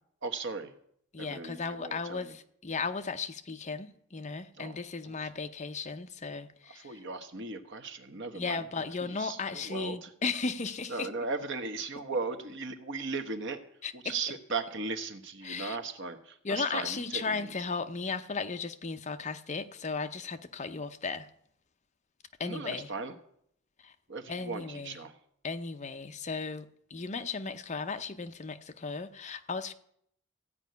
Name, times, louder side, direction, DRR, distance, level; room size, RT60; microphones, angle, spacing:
voice 1, 0.2-0.7 1.2-2.3 4.5-4.8 5.0-5.3 6.7-10.1 10.9-13.6 13.9-17.5 22.4-23.1 24.1-25.2, right 4 dB, 60° right, 1.2 m, -37 dB
voice 2, 1.1-7.0 8.3-11.1 13.8-14.1 15.4-15.8 16.4-21.3 22.4-22.9 23.8-23.9 24.3-25.0 25.4-29.7, left 4 dB, 35° left, 0.7 m, -36 dB
15.0 x 5.4 x 9.3 m
head